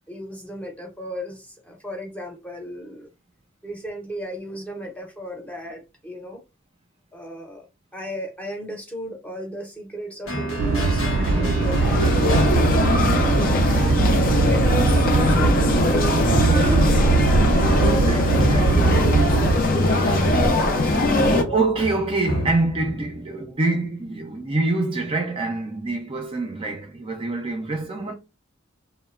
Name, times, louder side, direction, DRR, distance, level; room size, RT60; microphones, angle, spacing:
voice 1, 0.1-3.1 3.6-6.4 7.1-7.7 7.9-12.1 13.1-17.1 17.5-21.7, equal, 5° left, 0.7 m, -34 dB
sound 1, 10.2-23.4, equal, 70° left, 0.9 m, -31 dB
sound 2, 10.6-19.5, right 3 dB, 85° right, 0.4 m, -21 dB
sound 3, 11.6-21.4, left 2 dB, 45° left, 0.5 m, -21 dB
voice 2, 15.1-15.5 18.1-18.7 19.9-20.2 21.1-21.2 21.5-28.1, right 2 dB, 25° right, 0.4 m, -26 dB
3.0 x 2.1 x 2.3 m
head